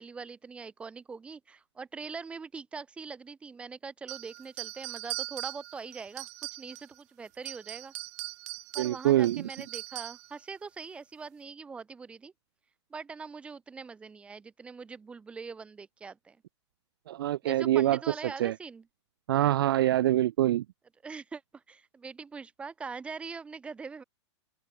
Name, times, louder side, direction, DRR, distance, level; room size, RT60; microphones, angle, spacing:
voice 1, 0.0-6.3 6.6-7.9 8.7-12.3 12.9-16.4 17.4-18.8 21.0-24.0, right 5 dB, 5° right, 2.3 m, -42 dB
sound 1, 4.1-7.0 7.3-10.3, right 23 dB, 35° right, 2.7 m, -40 dB
voice 2, 8.8-9.5 17.1-18.1 18.4-18.5 19.3-20.6, right 13 dB, 50° right, 0.5 m, -25 dB
open air
hypercardioid pair, 170°, 15 cm